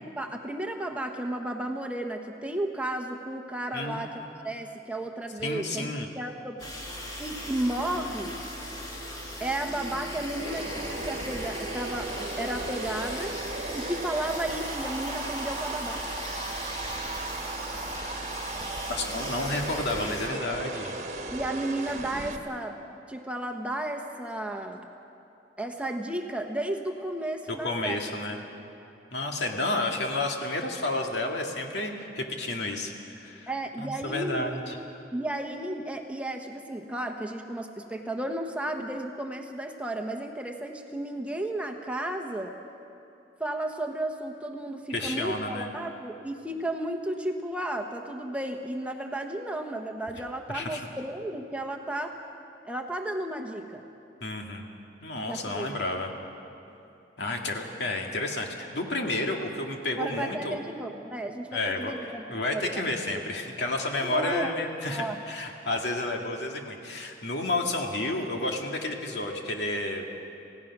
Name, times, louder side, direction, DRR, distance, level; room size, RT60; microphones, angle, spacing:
voice 1, 0.2-6.6 7.2-8.4 9.4-13.3 13.7-16.0 21.3-22.8 23.1-24.9 25.6-28.0 33.5-34.6 35.1-42.6 43.4-52.2 52.6-53.8 55.2-55.7 60.0-63.2 64.0-64.5 64.9-65.2, right 1 dB, 5° right, 3 dB, 1.0 m, -33 dB
voice 2, 5.4-6.1 19.0-21.0 27.6-28.4 29.1-33.5 33.8-34.8 44.9-45.7 50.5-50.8 54.2-54.7 55.0-56.1 57.2-60.6 61.5-70.0, left 2 dB, 75° left, 1 dB, 2.2 m, -31 dB
sound 1, 6.6-20.3, equal, 20° left, 2.7 m, -38 dB
sound 2, 10.4-22.4, right 3 dB, 40° right, 1.4 m, -36 dB
28.0 x 17.0 x 6.1 m, 2.8 s
head